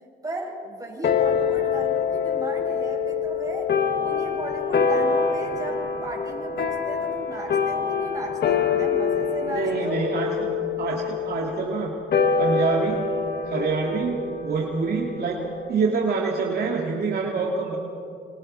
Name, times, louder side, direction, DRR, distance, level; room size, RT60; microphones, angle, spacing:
voice 1, 0.2-10.0, right 2 dB, 20° right, -2 dB, 6.9 m, -36 dB
sound 1, 1.0-15.8, left 6 dB, 55° left, 1.7 m, -25 dB
voice 2, 9.4-10.5 10.8-11.9 12.4-13.0 13.5-15.4 15.7-17.8, right 4 dB, 55° right, -1 dB, 2.4 m, -26 dB
27.5 x 27.0 x 4.3 m, 2.5 s
cardioid pair, 90°, 20 cm